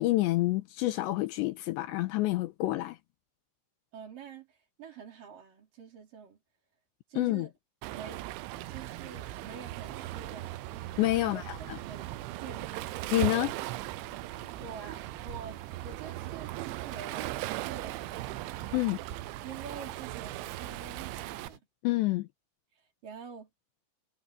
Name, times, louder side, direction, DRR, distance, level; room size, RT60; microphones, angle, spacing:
voice 1, 0.0-3.0 7.2-7.5 11.0-11.8 13.1-13.5 18.7-19.0 21.8-22.3, left 17 dB, 75° left, 2.9 m, -28 dB
voice 2, 3.9-6.4 7.1-7.5 7.9-8.2 8.7-10.6 11.2-12.8 14.3-18.4 19.4-21.7 22.7-23.5, right 6 dB, 45° right, 5.0 m, -47 dB
Waves surf, 7.8-21.5, right 18 dB, 90° right, 3.1 m, -38 dB
sound 1, 8.5-21.6, right 6 dB, 70° right, 5.0 m, -50 dB
omnidirectional pair, 5.5 m